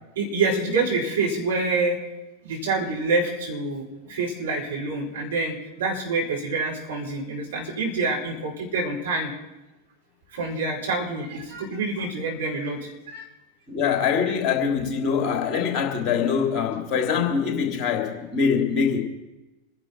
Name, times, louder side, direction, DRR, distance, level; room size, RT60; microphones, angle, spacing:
voice 1, 0.2-2.0 2.4-9.3 10.3-13.2, right 3 dB, 65° right, -2 dB, 5.5 m, -27 dB
voice 2, 13.7-19.0, left 6 dB, 30° left, 1 dB, 3.3 m, -23 dB
26.0 x 11.0 x 4.6 m, 1.0 s
figure-of-eight pair, 90°, 0 cm